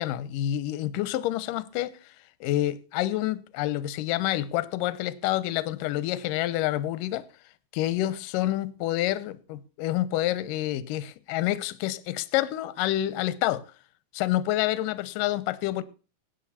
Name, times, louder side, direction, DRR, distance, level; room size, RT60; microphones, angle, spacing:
voice 1, 0.0-2.0 2.4-7.2 7.7-13.6 14.1-15.8, left 14 dB, 75° left, 2.3 m, -28 dB
17.0 x 9.2 x 4.3 m
omnidirectional pair, 4.2 m